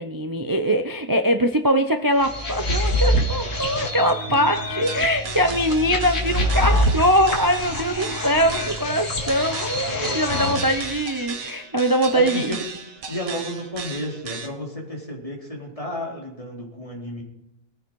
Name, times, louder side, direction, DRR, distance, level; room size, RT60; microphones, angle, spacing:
voice 1, 0.0-12.6, equal, 35° right, 7 dB, 0.3 m, -22 dB
sound 1, 2.2-11.0, equal, 55° left, 2.5 m, -25 dB
Buzz sticks impro, 4.8-14.5, right 5 dB, 65° right, 1.8 m, -36 dB
voice 2, 12.1-12.6 13.1-17.2, left 1 dB, 20° left, -2 dB, 3.8 m, -32 dB
19.5 x 14.5 x 4.7 m, 0.83 s
omnidirectional pair, 1.6 m